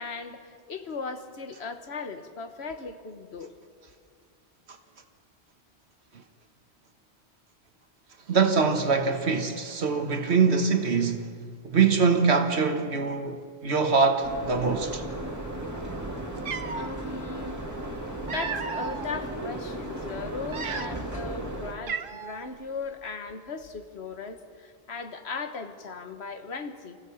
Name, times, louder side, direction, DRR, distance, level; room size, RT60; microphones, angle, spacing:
voice 1, 0.0-3.5 16.7-17.6 18.2-27.0, left 4 dB, 80° left, 1.5 m, -37 dB
voice 2, 8.3-11.3 11.6-13.4 13.6-15.0, right 5 dB, 90° right, 1.7 m, -23 dB
sound 1, 14.2-21.7, right 1 dB, 15° right, 1.8 m, -35 dB
Cat, 15.9-16.0 16.4-16.9 17.9-19.1 19.6-19.8 20.4-21.2 21.4-21.5 21.9-22.5, right 5 dB, 55° right, 1.0 m, -34 dB
24.5 x 16.0 x 7.1 m
omnidirectional pair, 1.1 m